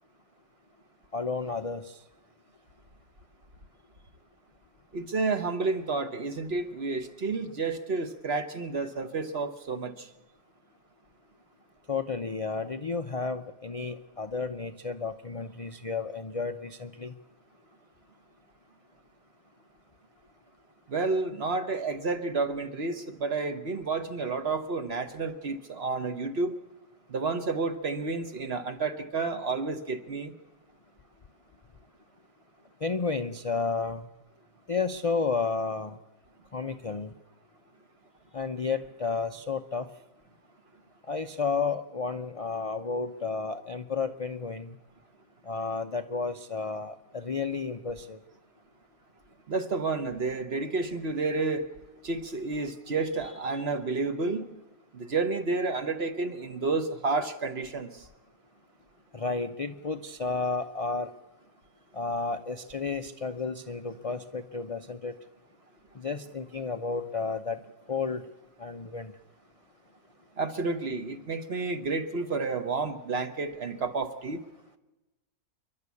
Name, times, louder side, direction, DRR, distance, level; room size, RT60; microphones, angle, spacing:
voice 1, 1.1-2.0 11.9-17.1 32.8-34.1 34.7-36.0 36.5-37.1 38.3-39.9 41.1-44.8 45.5-48.2 59.1-61.1 61.9-65.2 65.9-67.6 67.9-68.2 68.6-69.1, left 4 dB, 55° left, 8 dB, 0.3 m, -32 dB
voice 2, 4.9-10.1 20.9-26.5 27.1-30.3 49.5-51.6 52.0-54.5 54.9-58.0 70.4-74.4, right 3 dB, 45° right, 8 dB, 1.3 m, -30 dB
28.5 x 11.5 x 8.4 m, 1.1 s
omnidirectional pair, 1.7 m